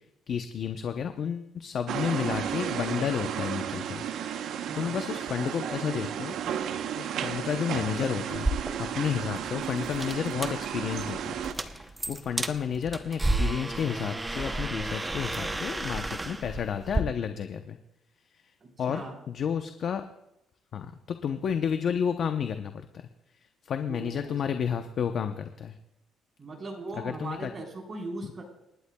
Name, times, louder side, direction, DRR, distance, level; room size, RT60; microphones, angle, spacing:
voice 1, 0.3-6.4 7.0-8.5 8.8-11.4 11.7-17.8 18.8-20.0 20.7-23.1 23.7-25.7 27.0-27.5, left 7 dB, 55° left, 7 dB, 0.7 m, -31 dB
sound 1, 1.9-11.5, right 9 dB, 70° right, 0.9 m, -33 dB
voice 2, 4.7-5.1 18.6-19.2 23.9-24.4 26.4-28.4, right 2 dB, 30° right, 0 dB, 4.2 m, -39 dB
sound 2, 8.3-17.0, right 2 dB, 15° right, 0.7 m, -32 dB
28.0 x 11.5 x 2.3 m, 0.87 s
cardioid pair, 110°, 0 cm